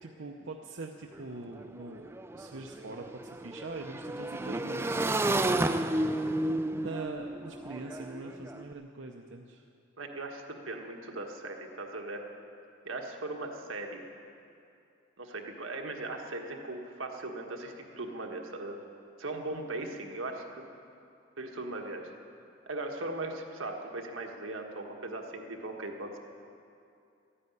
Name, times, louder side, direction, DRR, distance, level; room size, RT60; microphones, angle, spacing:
voice 1, 0.0-6.5 6.7-9.7 19.5-19.9, right 3 dB, 65° right, 2 dB, 0.8 m, -43 dB
Motorcycle / Engine, 1.1-1.2 1.5-8.6, right 1 dB, 10° right, 0.4 m, -32 dB
voice 2, 10.0-12.2 12.8-14.0 15.2-18.8 19.2-20.6 21.4-22.1 22.7-26.2, right 2 dB, 85° right, 2 dB, 1.5 m, -38 dB
13.5 x 9.9 x 9.7 m, 2.6 s
head